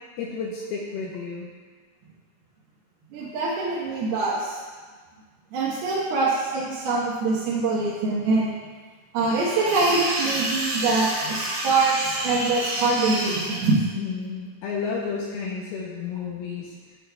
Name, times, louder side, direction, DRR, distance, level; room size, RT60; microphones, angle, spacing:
voice 1, 0.2-1.5 13.9-17.0, left 5 dB, 80° left, -4 dB, 2.6 m, -32 dB
voice 2, 3.1-4.6 5.5-8.5 9.1-13.8, right 3 dB, 75° right, -7 dB, 3.0 m, -24 dB
sound 1, 9.4-13.7, right 1 dB, 55° right, 2.0 m, -29 dB
11.0 x 8.5 x 2.3 m, 1.5 s
omnidirectional pair, 4.7 m